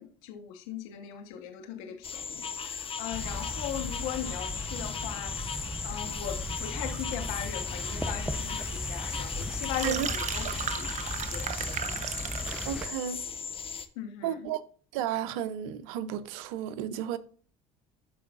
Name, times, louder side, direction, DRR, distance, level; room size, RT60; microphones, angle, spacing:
voice 1, 0.0-11.5 11.8-12.0 13.9-14.5, left 10 dB, 80° left, 1.2 m, -39 dB
sound 1, 2.0-13.9, left 6 dB, 30° left, 1.0 m, -37 dB
sound 2, 3.1-12.9, equal, 5° right, 0.7 m, -37 dB
sound 3, 9.5-12.8, right 8 dB, 45° right, 0.9 m, -35 dB
voice 2, 12.6-13.4 14.2-14.6 14.9-17.2, right 11 dB, 80° right, 0.7 m, -33 dB
12.5 x 4.9 x 2.5 m
hypercardioid pair, 75°, 17 cm